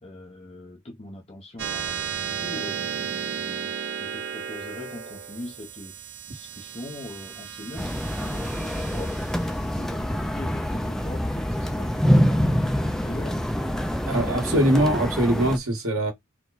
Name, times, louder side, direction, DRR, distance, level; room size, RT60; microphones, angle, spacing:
voice 1, 0.0-9.1 9.6-13.4, left 2 dB, 30° left, 0.8 m, -41 dB
sound 1, 1.6-12.4, right 7 dB, 50° right, 0.6 m, -35 dB
sound 2, 7.8-15.6, equal, ahead, 0.4 m, -25 dB
voice 2, 14.0-16.1, right 1 dB, 85° right, 1.7 m, -22 dB
4.5 x 2.2 x 4.0 m
head